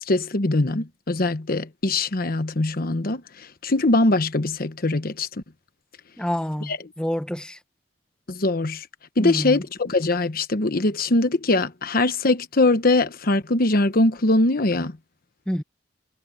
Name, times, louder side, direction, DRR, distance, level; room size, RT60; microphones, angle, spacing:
voice 1, 0.0-5.4 6.7-6.8 8.3-8.9 9.2-15.0, left 2 dB, 55° left, 1.1 m, -22 dB
voice 2, 6.2-7.6 9.2-9.6 15.5-15.6, equal, 5° left, 1.1 m, -28 dB
head